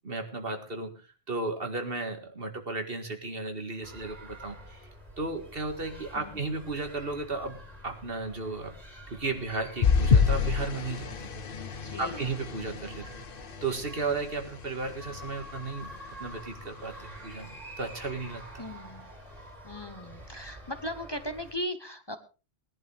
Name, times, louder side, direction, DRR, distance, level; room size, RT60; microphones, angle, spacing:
voice 1, 0.0-0.9 1.3-4.8 5.2-8.7 9.1-11.4 12.0-13.2 13.6-15.9 16.2-18.6, right 3 dB, 65° right, 5 dB, 2.2 m, -34 dB
sound 1, 3.8-21.5, equal, 40° right, 3.2 m, -47 dB
sound 2, 9.8-14.5 15.1-15.3 15.7-15.8, left 6 dB, 60° left, 1.0 m, -27 dB
voice 2, 11.6-12.3 18.6-19.1 19.6-22.2, left 1 dB, 25° left, 9 dB, 0.9 m, -38 dB
20.0 x 11.0 x 3.4 m, 0.32 s
omnidirectional pair, 1.0 m